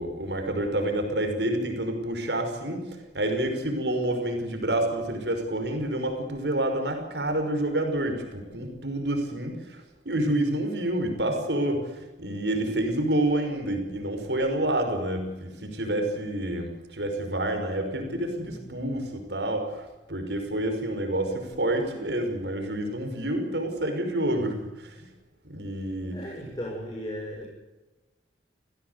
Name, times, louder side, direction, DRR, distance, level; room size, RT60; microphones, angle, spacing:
voice 1, 0.0-25.1 25.4-26.2, right 1 dB, 70° right, 5 dB, 5.5 m, -28 dB
voice 2, 18.0-18.7 25.8-27.5, equal, 25° left, -3 dB, 6.1 m, -38 dB
28.5 x 16.5 x 8.3 m, 1.1 s
head